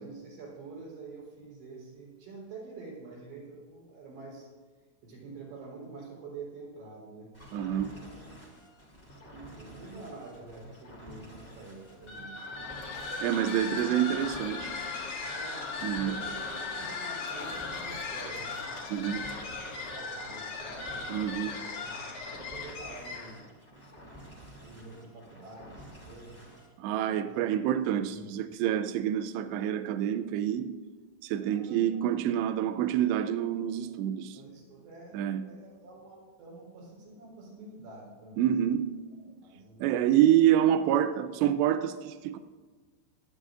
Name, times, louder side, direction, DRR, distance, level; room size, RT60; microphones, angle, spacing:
voice 1, 0.0-4.5 5.0-7.6 7.9-8.3 9.3-12.4 13.2-14.0 15.3-15.6 16.0-18.6 18.9-23.4 24.6-26.4 27.2-27.5 27.7-28.2 31.5-32.6 34.3-35.2 35.4-38.5 39.4-40.0, right 3 dB, 55° right, 5.6 m, -47 dB
sound 1, 7.3-26.7, right 1 dB, 5° left, 1.5 m, -51 dB
voice 2, 7.5-7.9 13.2-14.7 15.8-16.2 18.9-19.3 21.1-21.6 26.8-30.7 31.2-34.4 35.1-35.5 38.4-38.9 39.8-42.4, right 11 dB, 90° right, 2.4 m, -27 dB
sound 2, 11.9-12.0 12.5-14.9 15.2-15.3 17.2-19.4, left 7 dB, 80° left, 3.3 m, -49 dB
sound 3, 12.0-23.4, left 4 dB, 55° left, 2.4 m, -38 dB
25.5 x 10.0 x 2.5 m
omnidirectional pair, 5.6 m